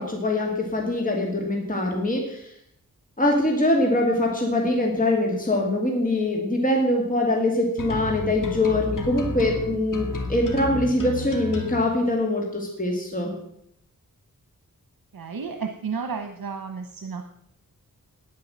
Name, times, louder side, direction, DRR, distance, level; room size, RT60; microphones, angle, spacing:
voice 1, 0.0-2.5 3.2-13.3, left 1 dB, 25° left, 0 dB, 2.3 m, -23 dB
sound 1, 7.8-11.8, left 1 dB, 65° left, 2.1 m, -32 dB
voice 2, 15.1-17.3, right 5 dB, 85° right, 5 dB, 1.1 m, -32 dB
9.8 x 9.5 x 7.5 m, 0.75 s
wide cardioid pair, 100°, 34 cm